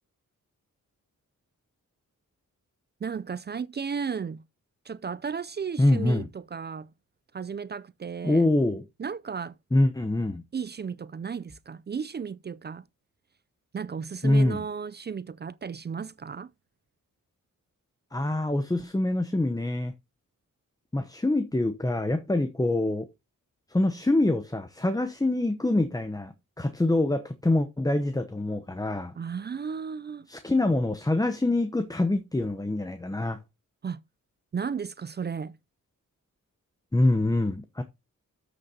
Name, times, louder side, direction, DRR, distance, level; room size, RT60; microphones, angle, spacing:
voice 1, 3.0-4.4 4.9-6.9 7.3-8.5 9.0-9.5 10.5-12.8 13.7-16.5 29.2-30.3 33.8-34.0 34.5-35.6, right 6 dB, 30° right, 0.4 m, -34 dB
voice 2, 5.8-6.3 8.2-8.8 9.7-10.4 14.2-14.6 18.1-19.9 20.9-23.1 23.7-29.1 30.3-33.4 36.9-37.8, left 2 dB, 10° left, 0.8 m, -25 dB
13.0 x 6.5 x 2.8 m
cardioid pair, 60°, 33 cm